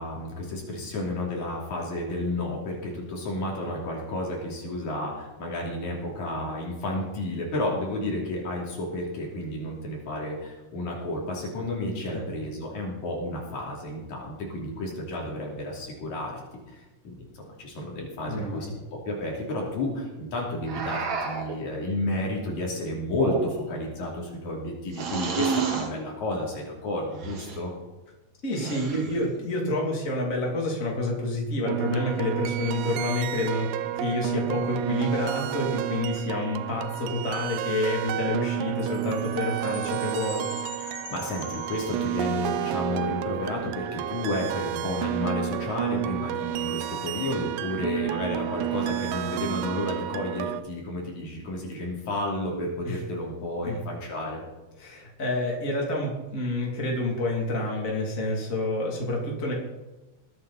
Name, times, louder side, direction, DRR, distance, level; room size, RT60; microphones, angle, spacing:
voice 1, 0.0-16.4 16.7-18.7 19.1-27.7 40.9-54.4, left 1 dB, 75° left, -1 dB, 4.4 m, -31 dB
voice 2, 18.2-18.7 28.4-40.5 52.8-53.0 53.6-53.8 54.8-59.5, left 1 dB, 25° left, -1 dB, 3.1 m, -28 dB
sound 1, 20.7-21.6 23.1-23.8 24.9-25.9 27.2-27.6 28.5-29.2, right 4 dB, 70° right, 3.0 m, -30 dB
sound 2, 31.6-50.6, right 13 dB, 85° right, 2.1 m, -31 dB
Chime, 38.8-42.5, left 4 dB, 50° left, 3.0 m, -43 dB
20.5 x 9.2 x 4.2 m, 1.1 s
omnidirectional pair, 3.4 m